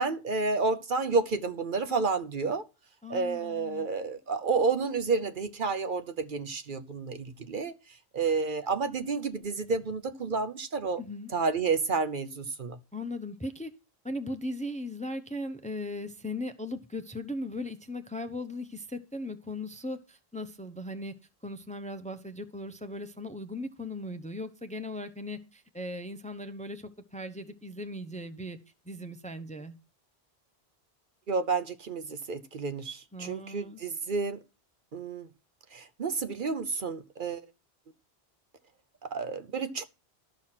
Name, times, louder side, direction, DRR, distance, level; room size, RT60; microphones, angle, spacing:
voice 1, 0.0-2.7 3.1-11.0 11.3-12.8 31.3-34.4 34.9-35.3 35.7-37.5 39.0-39.8, right 4 dB, 55° right, 0.9 m, -30 dB
voice 2, 3.0-3.9 11.0-11.3 12.9-13.7 14.0-21.1 21.4-28.6 28.8-29.8 33.1-33.8, left 1 dB, 10° left, 0.7 m, -38 dB
12.5 x 6.2 x 5.8 m
omnidirectional pair, 1.1 m